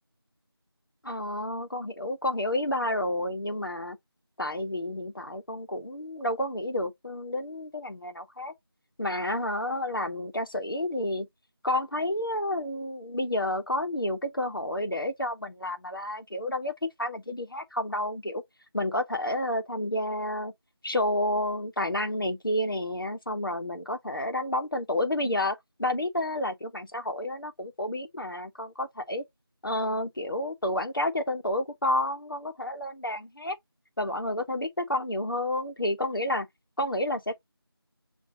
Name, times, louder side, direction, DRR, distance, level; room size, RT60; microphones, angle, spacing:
voice 1, 1.0-4.0 4.4-8.5 9.0-11.3 11.6-18.4 18.7-20.5 20.8-29.2 29.6-33.6 34.0-36.5 36.8-37.4, left 1 dB, 60° left, 1.1 m, -30 dB
6.7 x 2.6 x 2.8 m
figure-of-eight pair, 175°, 13 cm